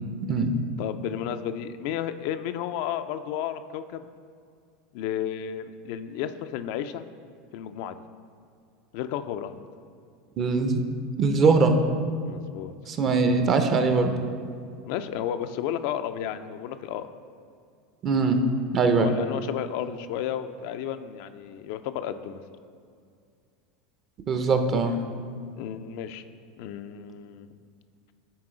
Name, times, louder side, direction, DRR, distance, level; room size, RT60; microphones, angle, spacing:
voice 1, 0.8-4.0 4.9-7.1 7.5-8.0 8.9-9.6 12.2-12.7 14.8-17.1 19.0-22.4 25.6-26.2 26.6-27.5, left 10 dB, 65° left, 10 dB, 0.3 m, -32 dB
voice 2, 10.4-10.8 11.2-11.7 12.9-14.2 18.0-18.4 18.7-19.1 24.3-25.0, right 4 dB, 40° right, 7 dB, 0.7 m, -21 dB
9.6 x 4.1 x 3.8 m, 2.3 s
hypercardioid pair, 95°, 0 cm